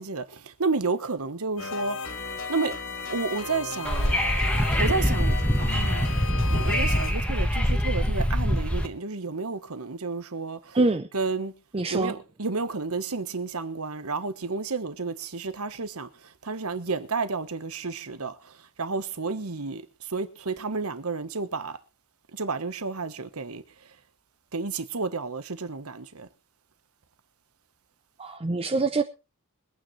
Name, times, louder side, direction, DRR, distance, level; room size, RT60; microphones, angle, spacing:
voice 1, 0.0-2.0 2.5-2.8 3.1-4.2 4.8-6.1 6.5-10.8 11.1-11.5 11.9-21.8 22.3-23.9 24.5-26.3, right 4 dB, 70° right, 1.2 m, -31 dB
sound 1, 1.6-7.1, left 4 dB, 65° left, 3.2 m, -35 dB
Wind / Subway metro underground, 3.8-8.9, equal, 5° left, 1.5 m, -24 dB
voice 2, 10.7-11.1 11.7-12.1 28.2-29.0, right 3 dB, 25° right, 0.6 m, -24 dB
23.5 x 9.2 x 3.2 m
head